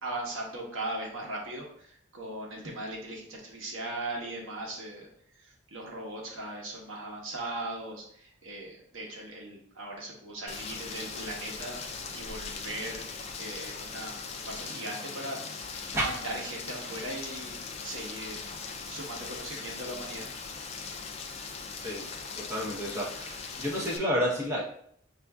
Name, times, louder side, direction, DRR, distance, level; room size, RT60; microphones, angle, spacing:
voice 1, 0.0-5.1 5.4-11.8 12.1-13.1 13.3-15.4 15.7-18.4 18.9-20.3, right 1 dB, 80° right, -2 dB, 1.0 m, -39 dB
Rain, 10.5-24.0, left 5 dB, 30° left, 0.3 m, -40 dB
voice 2, 22.4-24.6, equal, 15° right, -5 dB, 0.7 m, -30 dB
5.9 x 2.5 x 2.3 m, 0.64 s
head